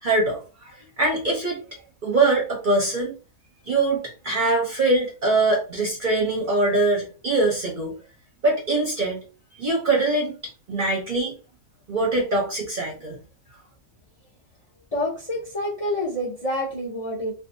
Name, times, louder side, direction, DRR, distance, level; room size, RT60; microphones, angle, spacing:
voice 1, 0.0-1.6 2.0-3.1 3.7-7.9 8.4-9.2 9.5-10.3 10.7-11.3 11.9-13.2, right 2 dB, 45° right, -1 dB, 0.6 m, -23 dB
voice 2, 14.9-17.3, left 1 dB, 45° left, -3 dB, 0.4 m, -27 dB
2.6 x 2.3 x 2.5 m, 0.34 s
omnidirectional pair, 1.5 m